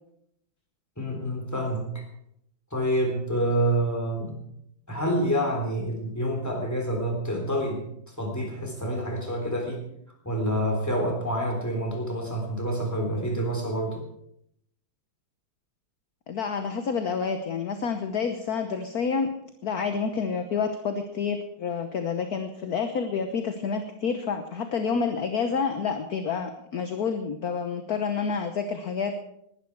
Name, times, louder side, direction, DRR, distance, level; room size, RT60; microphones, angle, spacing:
voice 1, 1.0-1.9 2.7-4.4 4.9-7.8 8.2-9.8 10.2-14.0, right 1 dB, 10° left, 1 dB, 3.6 m, -27 dB
voice 2, 16.3-19.3 19.6-29.1, left 5 dB, 55° left, 7 dB, 1.4 m, -28 dB
20.0 x 11.5 x 4.7 m, 0.77 s
omnidirectional pair, 2.2 m